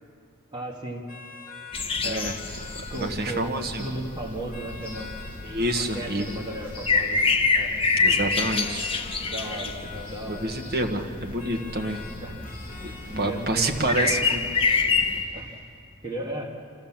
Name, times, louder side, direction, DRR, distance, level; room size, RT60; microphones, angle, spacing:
voice 1, 0.5-1.1 2.0-2.3 2.9-3.5 3.8-5.1 5.7-7.3 7.5-7.7 9.3-10.5 12.2-12.4 13.1-13.8 15.3-15.5 16.0-16.5, right 1 dB, 20° right, -1 dB, 1.8 m, -35 dB
sound 1, 1.1-14.7, left 5 dB, 40° left, 1.9 m, -45 dB
sound 2, 1.7-15.2, left 4 dB, 25° left, 0.9 m, -28 dB
voice 2, 2.0-2.3 2.9-3.9 5.4-6.3 8.0-8.9 10.3-12.0 13.2-14.4, right 1 dB, 45° right, 3 dB, 1.4 m, -28 dB
sound 3, 2.5-15.6, left 1 dB, 5° left, 6.0 m, -48 dB
25.5 x 14.5 x 7.4 m, 2.4 s
head